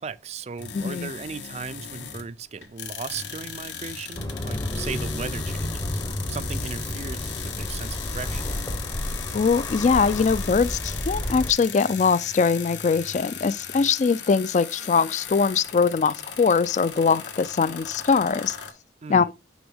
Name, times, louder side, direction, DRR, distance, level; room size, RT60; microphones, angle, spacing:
voice 1, 0.0-8.4 19.0-19.3, right 5 dB, 35° right, 0.4 m, -37 dB
sound 1, 0.6-2.4 2.6-18.7, left 7 dB, 80° left, 1.4 m, -37 dB
voice 2, 0.7-1.1 9.3-18.6 19.1-19.3, left 5 dB, 40° left, 0.3 m, -22 dB
sound 2, 4.2-11.5, left 1 dB, 20° left, 0.7 m, -31 dB
6.1 x 6.1 x 3.5 m
head